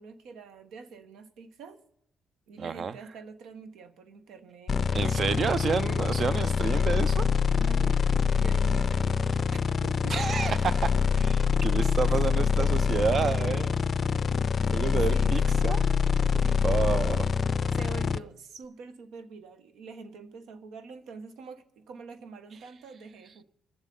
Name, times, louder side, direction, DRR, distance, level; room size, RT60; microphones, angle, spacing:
voice 1, 0.0-1.8 2.5-5.2 7.5-10.2 12.1-12.2 14.8-15.5 16.4-16.8 17.7-23.4, right 4 dB, 85° right, 1.2 m, -45 dB
voice 2, 2.6-3.0 4.9-7.3 10.1-13.7 14.7-15.8 16.3-17.3, right 6 dB, 50° right, 0.5 m, -30 dB
sound 1, 4.7-18.2, left 6 dB, 45° left, 0.4 m, -25 dB
21.5 x 7.3 x 3.9 m
cardioid pair, 90°, 0 cm